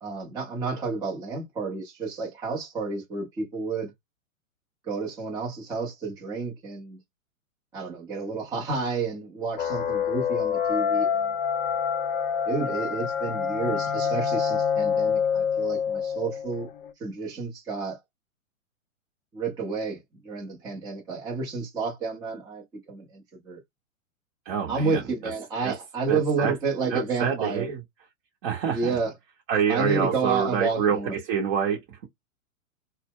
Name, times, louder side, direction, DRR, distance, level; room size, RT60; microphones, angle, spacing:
voice 1, 0.0-3.9 4.9-7.0 7.7-11.3 12.5-16.7 17.0-18.0 19.3-20.0 20.2-23.6 24.7-27.6 28.7-29.1 29.7-31.2, right 4 dB, 10° right, 0.5 m, -30 dB
sound 1, 9.6-16.9, left 7 dB, 40° left, 0.5 m, -26 dB
voice 2, 24.5-25.3 25.6-25.8 26.1-26.6 26.9-27.8 28.4-29.0 29.5-32.1, right 7 dB, 40° right, 0.8 m, -27 dB
2.1 x 2.0 x 3.5 m
hypercardioid pair, 110°, 41 cm